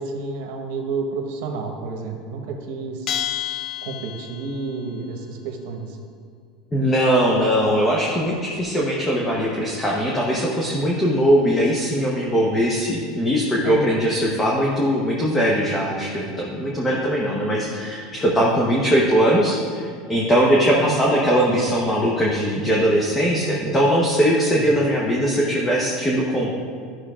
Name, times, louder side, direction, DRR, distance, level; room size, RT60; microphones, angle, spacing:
voice 1, 0.0-3.1 3.8-6.0 13.6-14.1 20.7-21.1 23.2-23.9 24.5-24.6, right 4 dB, 70° right, 2 dB, 1.1 m, -30 dB
Bell, 3.1-4.6, left 11 dB, 40° left, 0.5 m, -29 dB
voice 2, 6.7-26.6, equal, 15° left, -3 dB, 1.0 m, -20 dB
11.5 x 6.2 x 2.5 m, 2.2 s
supercardioid pair, 115°, 0 cm